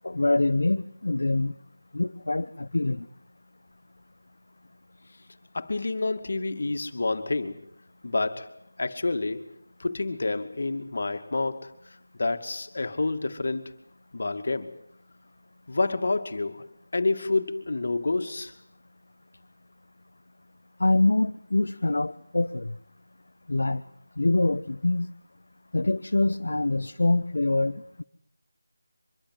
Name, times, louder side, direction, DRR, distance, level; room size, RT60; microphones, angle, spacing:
voice 1, 0.0-1.5 1.9-3.1 20.8-22.7 23.5-23.8 24.2-25.1 25.7-28.0, left 2 dB, 70° left, 9 dB, 0.9 m, -25 dB
voice 2, 5.5-7.6 8.0-8.5 8.8-9.5 9.8-13.8 14.1-14.8 15.7-16.7 16.9-18.5, left 3 dB, 55° left, 7 dB, 2.5 m, -28 dB
24.5 x 22.5 x 7.8 m, 0.70 s
figure-of-eight pair, 165°, 0 cm